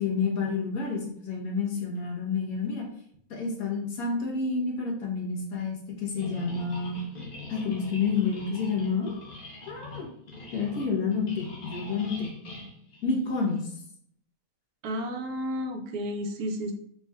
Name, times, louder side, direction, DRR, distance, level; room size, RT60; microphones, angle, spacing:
voice 1, 0.0-2.8 3.3-7.0 7.5-9.1 9.7-10.1 10.5-12.3 13.0-13.7, left 5 dB, 75° left, -2 dB, 1.6 m, -29 dB
sound 1, 6.2-13.6, left 3 dB, 40° left, 1.1 m, -43 dB
voice 2, 14.8-16.7, equal, 85° right, 5 dB, 1.2 m, -32 dB
4.3 x 4.1 x 2.3 m, 0.66 s
omnidirectional pair, 1.5 m